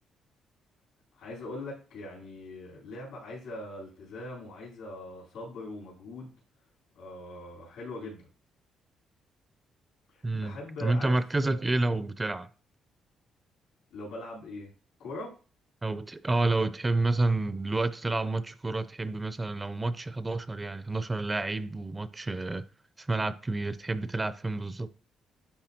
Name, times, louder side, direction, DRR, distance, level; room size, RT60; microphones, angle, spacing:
voice 1, 1.2-6.3 6.9-8.3 10.1-11.6 13.9-14.7 15.0-15.3, left 2 dB, 90° left, 3.5 m, -41 dB
voice 2, 10.2-12.5 15.8-22.6 23.0-24.9, right 2 dB, 20° right, 0.4 m, -29 dB
10.0 x 3.4 x 2.8 m
cardioid pair, 90°, 0 cm